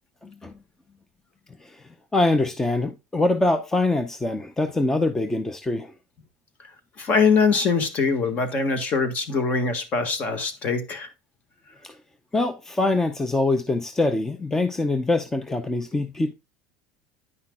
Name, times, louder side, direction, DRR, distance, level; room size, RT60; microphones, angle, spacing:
voice 1, 0.2-0.5 1.6-1.8 2.1-5.9 11.8-11.9 12.3-16.3, left 2 dB, 10° left, 0.6 m, -24 dB
voice 2, 7.0-11.1, left 5 dB, 40° left, 1.5 m, -23 dB
9.7 x 5.7 x 2.2 m
supercardioid pair, 130°, 4 cm